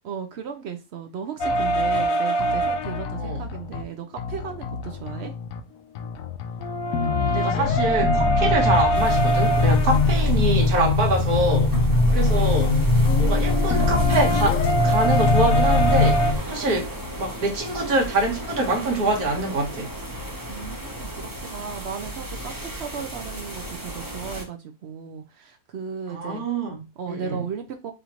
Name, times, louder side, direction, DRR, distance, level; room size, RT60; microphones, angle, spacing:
voice 1, 0.0-5.3 20.5-26.4 27.0-27.9, right 7 dB, 65° right, 0.7 m, -35 dB
sound 1, 1.4-3.8 4.2-5.6 5.9-16.3, left 1 dB, 70° left, 1.0 m, -25 dB
voice 2, 7.3-12.8 13.2-19.9 26.1-27.4, right 2 dB, 80° right, 1.7 m, -25 dB
sound 2, 7.6-16.4, left 2 dB, 35° left, 0.9 m, -21 dB
sound 3, 8.9-24.4, right 1 dB, 20° right, 0.6 m, -35 dB
4.9 x 2.6 x 2.9 m
omnidirectional pair, 1.6 m